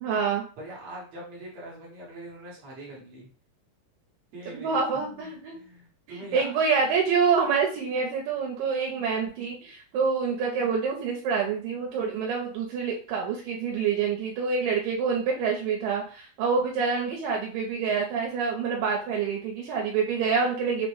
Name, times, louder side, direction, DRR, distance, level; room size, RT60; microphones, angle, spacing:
voice 1, 0.0-0.4 4.5-5.6 6.1-20.9, right 5 dB, 85° right, 0 dB, 2.3 m, -27 dB
voice 2, 0.6-3.3 4.3-6.5, right 1 dB, 65° right, -3 dB, 1.7 m, -43 dB
5.8 x 2.1 x 3.1 m, 0.40 s
omnidirectional pair, 4.0 m